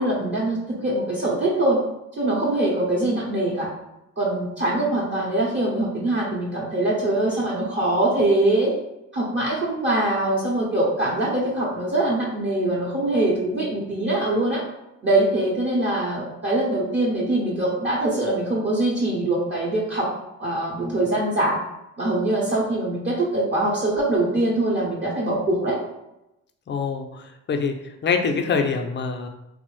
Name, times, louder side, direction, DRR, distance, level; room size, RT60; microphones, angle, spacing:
voice 1, 0.0-1.8 2.2-3.7 4.2-8.7 9.1-14.6 15.0-20.1 20.4-21.6 22.0-25.8, right 1 dB, 40° right, -5 dB, 0.8 m, -23 dB
voice 2, 26.7-27.2 27.5-27.8 28.0-29.3, left 5 dB, 35° left, 5 dB, 0.5 m, -24 dB
3.2 x 2.0 x 3.1 m, 0.89 s
cardioid pair, 90°, 30 cm